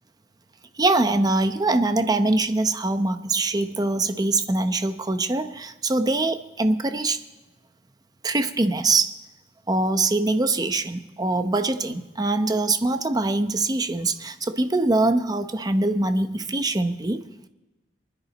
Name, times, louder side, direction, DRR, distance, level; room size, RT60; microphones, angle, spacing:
voice 1, 0.8-7.2 8.2-9.1 9.7-17.2, right 2 dB, 20° right, 9 dB, 0.8 m, -23 dB
23.5 x 10.0 x 4.1 m, 1.1 s
head